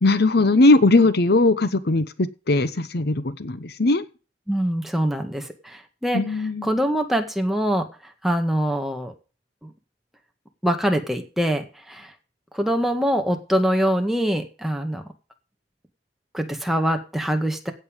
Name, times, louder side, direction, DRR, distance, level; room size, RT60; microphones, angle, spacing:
voice 1, 0.0-4.0 6.1-6.7, left 2 dB, 65° left, 13 dB, 0.9 m, -19 dB
voice 2, 4.5-6.2 6.6-7.8 8.2-9.1 9.6-9.7 10.6-12.1 12.5-15.0 16.3-17.7, equal, ahead, 4 dB, 1.8 m, -24 dB
16.5 x 7.0 x 5.3 m, 0.34 s
head